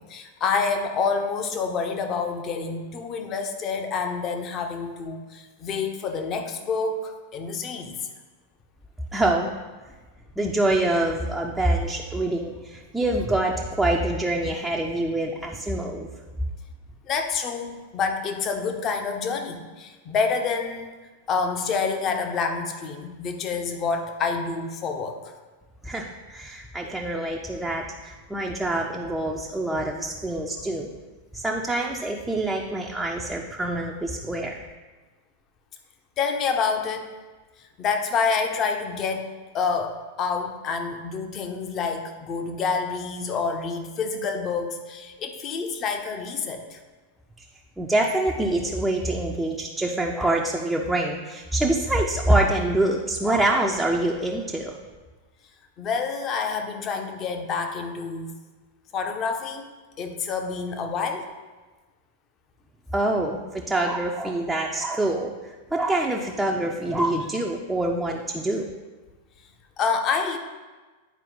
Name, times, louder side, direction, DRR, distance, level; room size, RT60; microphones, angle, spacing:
voice 1, 0.0-8.1 17.0-20.9 21.3-25.3 36.2-37.1 37.6-39.3 39.5-46.8 55.8-58.4 58.9-59.7 60.0-61.2 69.8-70.4, left 5 dB, 30° left, 5 dB, 0.8 m, -28 dB
voice 2, 9.1-9.5 10.4-16.1 25.8-30.9 31.3-34.6 47.4-47.5 47.8-54.8 62.9-68.7, right 1 dB, 5° right, -1 dB, 0.6 m, -25 dB
9.3 x 4.5 x 3.8 m, 1.3 s
figure-of-eight pair, 90°, 0 cm